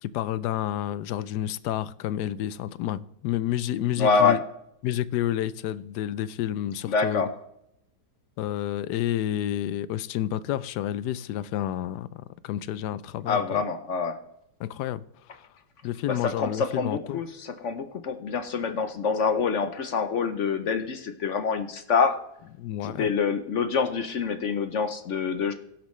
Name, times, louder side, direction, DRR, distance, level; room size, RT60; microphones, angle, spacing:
voice 1, 0.0-4.4 4.8-7.3 8.4-13.6 14.6-15.0 15.3-15.5 15.8-17.2 22.6-23.1, left 12 dB, 90° left, 1.2 m, -30 dB
voice 2, 4.0-4.4 6.9-7.3 13.3-14.2 16.1-22.2 22.8-25.5, left 5 dB, 55° left, 1.0 m, -26 dB
17.0 x 7.4 x 3.2 m
omnidirectional pair, 1.7 m